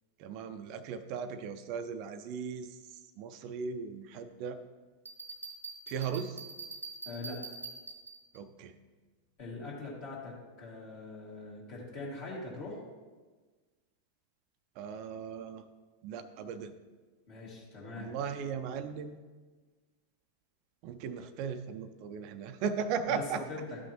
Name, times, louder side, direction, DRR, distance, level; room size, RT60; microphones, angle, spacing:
voice 1, 0.2-4.6 5.9-6.5 8.3-8.8 14.8-15.6 16.0-16.7 17.9-19.2 20.8-23.4, right 6 dB, 45° right, 10 dB, 0.5 m, -37 dB
Bell, 5.0-8.4, right 4 dB, 80° right, 0.8 m, -44 dB
voice 2, 7.1-7.4 9.4-12.8 17.3-18.1 23.1-23.2 23.5-23.8, left 3 dB, 45° left, -6 dB, 2.3 m, -42 dB
12.5 x 5.9 x 3.0 m, 1.3 s
figure-of-eight pair, 90°, 0 cm